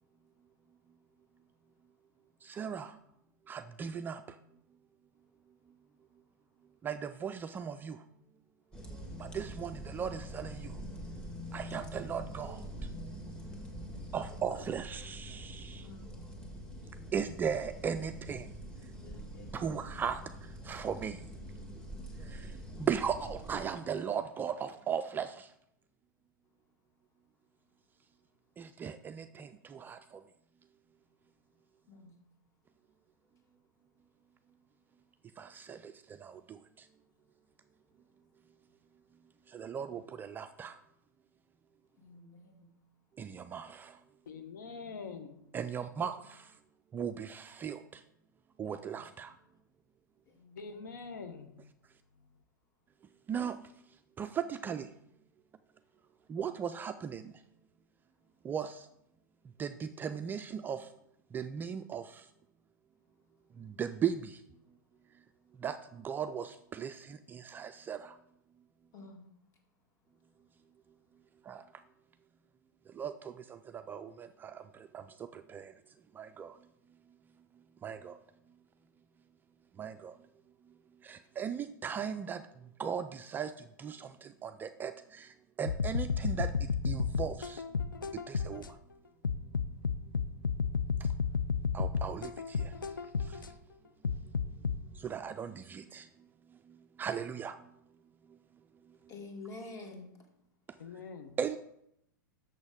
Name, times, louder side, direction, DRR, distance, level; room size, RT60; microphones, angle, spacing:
voice 1, 2.4-2.9 3.5-4.2 6.8-8.0 9.2-10.7 11.5-12.6 14.1-15.9 17.1-18.5 19.5-20.2 20.6-21.2 22.3-22.5 22.8-25.5 28.6-30.0 35.4-35.9 36.2-36.6 39.5-40.8 43.2-44.0 45.5-46.5 46.9-48.0 48.6-49.3 53.3-53.6 54.2-54.9 56.3-57.3 58.4-58.9 59.6-60.9 61.3-62.2 63.6-64.4 65.6-68.2 71.5-71.6 72.9-75.7 76.2-76.6 77.8-78.2 79.8-80.1 81.0-82.4 82.8-83.5 83.8-87.6 88.3-88.6 91.7-92.7 93.3-93.4 95.0-96.1 97.0-97.6 101.4-101.6, right 7 dB, 20° right, 0.3 m, -37 dB
sound 1, 8.7-23.6, equal, 10° left, 1.7 m, -45 dB
voice 2, 13.4-13.9 15.8-16.3 18.8-20.1 22.1-22.3 31.9-32.2 42.0-42.8 44.8-45.2 48.6-49.0 50.3-50.8 68.9-69.3 99.1-100.3, left 2 dB, 30° left, 1.9 m, -51 dB
voice 3, 44.3-45.3 50.6-51.5 100.8-101.4, left 5 dB, 70° left, 1.0 m, -44 dB
sound 2, 85.7-88.7 89.2-93.5 94.0-94.8, left 5 dB, 85° left, 0.5 m, -32 dB
6.7 x 6.2 x 5.1 m
hypercardioid pair, 105°, 11 cm